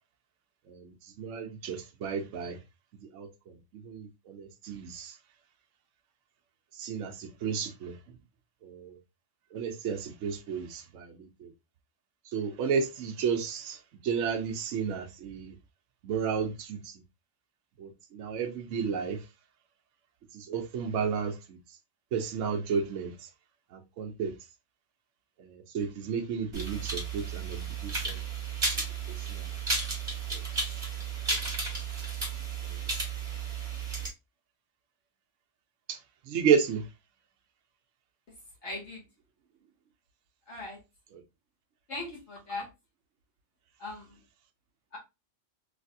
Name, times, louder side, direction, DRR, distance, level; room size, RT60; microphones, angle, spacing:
voice 1, 0.7-2.6 3.1-5.1 6.7-8.0 8.6-9.0 9.5-11.5 12.3-15.5 16.0-17.0 17.8-19.2 20.3-21.6 22.1-23.1 23.7-24.3 25.4-28.2 28.7-28.8 29.2-29.5 30.3-30.4 32.6-32.8 35.9-36.0 36.3-36.9 41.1-41.2, right 6 dB, 70° right, 0.9 m, -32 dB
sound 1, 26.5-34.1, right 4 dB, 20° right, 1.4 m, -33 dB
voice 2, 38.6-39.0 40.5-40.8 41.9-42.7 43.8-44.1, left 2 dB, 60° left, 1.5 m, -38 dB
3.3 x 3.2 x 2.6 m
omnidirectional pair, 1.4 m